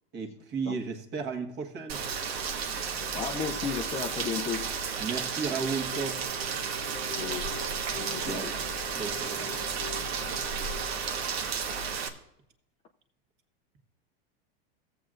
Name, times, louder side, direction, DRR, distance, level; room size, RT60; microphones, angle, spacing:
voice 1, 0.1-2.0 5.0-6.2 8.0-8.6 8.9-9.6, right 5 dB, 35° right, 5 dB, 1.5 m, -35 dB
Rain, 1.9-12.1, right 6 dB, 90° right, 1.4 m, -33 dB
voice 2, 3.1-4.7 7.2-7.5 8.1-8.5, left 7 dB, 20° left, 4 dB, 0.5 m, -34 dB
Keyboard (musical), 5.5-11.0, left 3 dB, 70° left, 1.1 m, -44 dB
16.0 x 7.7 x 2.5 m, 0.78 s
supercardioid pair, 135°, 30 cm